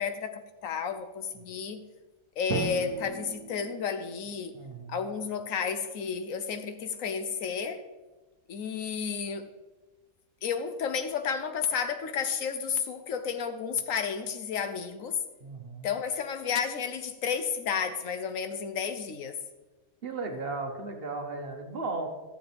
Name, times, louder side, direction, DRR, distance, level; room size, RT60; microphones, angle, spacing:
voice 1, 0.0-1.8 2.4-4.6 4.9-7.8 8.5-9.4 10.4-15.2 15.8-19.4, left 6 dB, 70° left, 9 dB, 1.0 m, -32 dB
Drum, 2.5-5.0, right 5 dB, 80° right, 1.3 m, -37 dB
voice 2, 4.5-5.0 15.4-15.9 20.0-22.1, right 3 dB, 45° right, 3 dB, 1.0 m, -35 dB
14.0 x 7.6 x 3.4 m, 1.2 s
omnidirectional pair, 1.5 m